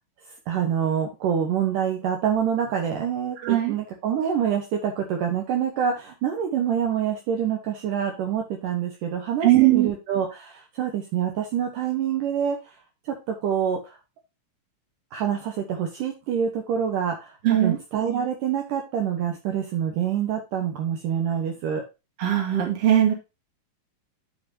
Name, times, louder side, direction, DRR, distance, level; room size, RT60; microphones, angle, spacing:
voice 1, 0.5-12.7 13.1-14.0 15.1-21.8, right 8 dB, 70° right, 2 dB, 2.7 m, -26 dB
voice 2, 3.4-3.7 9.4-9.9 17.4-17.8 22.2-23.1, right 12 dB, 45° right, 2 dB, 3.1 m, -19 dB
9.9 x 5.8 x 2.8 m, 0.26 s
omnidirectional pair, 4.1 m